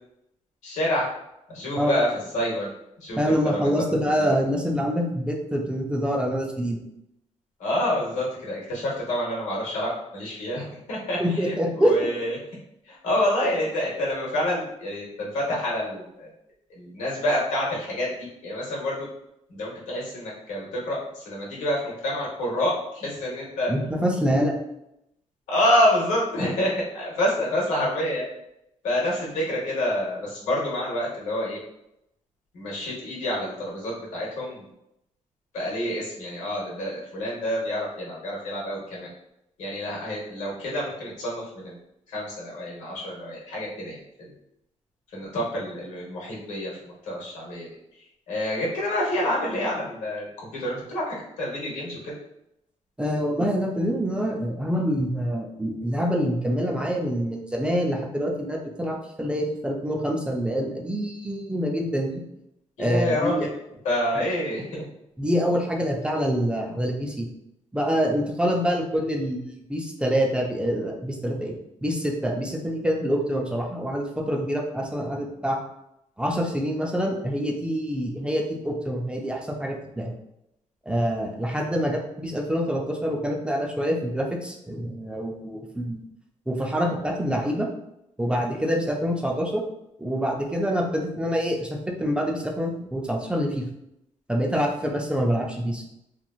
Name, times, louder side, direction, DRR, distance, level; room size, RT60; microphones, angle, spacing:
voice 1, 0.6-1.0 1.5-2.1 2.3-2.7 3.0-3.2 3.4-3.8 4.2-4.3 7.6-12.4 12.8-16.3 16.7-19.1 19.5-23.7 25.5-28.3 28.8-31.6 32.5-34.7 35.5-39.1 39.6-41.8 42.1-44.3 45.1-47.7 48.3-52.1 62.8-63.5 63.8-64.9, left 1 dB, 90° left, -4 dB, 1.1 m, -28 dB
voice 2, 3.2-6.8 11.2-11.9 23.7-24.5 53.0-62.2 62.8-63.5 64.2-64.3 65.2-67.3 67.7-71.5 71.8-75.6 76.2-80.1 80.9-86.1 86.5-87.7 88.2-89.6 90.0-93.6 94.3-95.8, equal, 10° right, 0 dB, 0.5 m, -26 dB
3.0 x 2.5 x 2.4 m, 0.82 s
cardioid pair, 90°, 12 cm